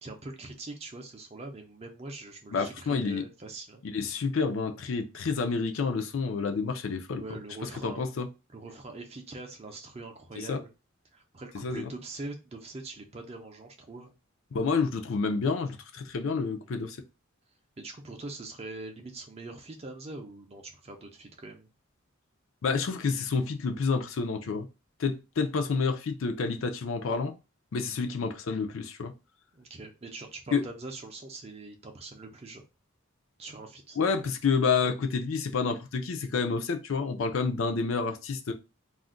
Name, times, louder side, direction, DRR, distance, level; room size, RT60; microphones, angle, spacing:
voice 1, 0.0-3.8 7.2-8.0 8.5-10.7 11.1-14.1 17.8-21.7 29.5-32.6 33.4-34.0, right 2 dB, 30° right, 0.5 m, -43 dB
voice 2, 2.5-3.2 3.8-7.2 7.8-8.3 10.4-10.6 11.5-11.9 14.5-17.0 22.6-24.7 25.0-27.3 27.7-29.1 30.5-30.6 34.0-38.5, left 5 dB, 65° left, 0.4 m, -29 dB
2.4 x 2.1 x 3.7 m
head